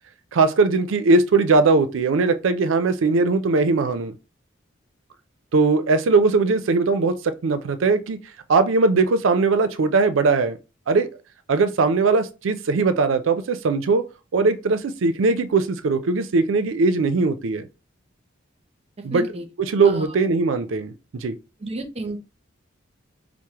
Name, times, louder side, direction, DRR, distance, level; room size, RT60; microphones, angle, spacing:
voice 1, 0.3-4.1 5.5-7.2 7.4-8.2 8.5-10.6 10.9-11.1 11.5-14.0 14.3-17.6 19.0-19.2 19.7-21.3, right 3 dB, 80° right, 0.4 m, -20 dB
voice 2, 19.1-19.5 19.8-20.1 21.6-22.2, right 2 dB, 30° right, 0.6 m, -31 dB
4.6 x 2.0 x 2.8 m
head